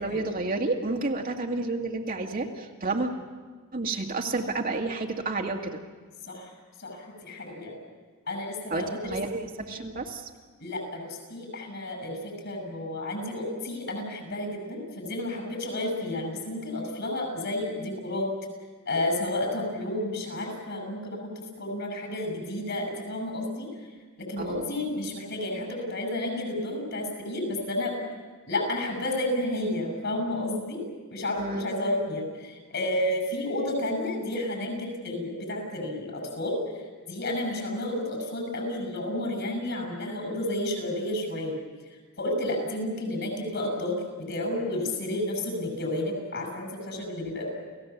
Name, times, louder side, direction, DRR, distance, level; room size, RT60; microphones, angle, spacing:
voice 1, 0.0-3.1 3.7-5.8 8.7-10.3 24.4-24.7 31.4-31.7 46.9-47.0, right 3 dB, 40° right, 1 dB, 2.0 m, -30 dB
voice 2, 6.8-7.8 8.3-9.1 9.6-9.8 10.6-12.2 12.4-18.3 18.9-23.7 24.2-27.9 28.4-30.8 31.1-36.6 37.1-41.6 42.2-44.0 44.3-47.5, left 1 dB, 55° left, 3 dB, 7.4 m, -31 dB
29.5 x 17.5 x 7.3 m, 1.4 s
head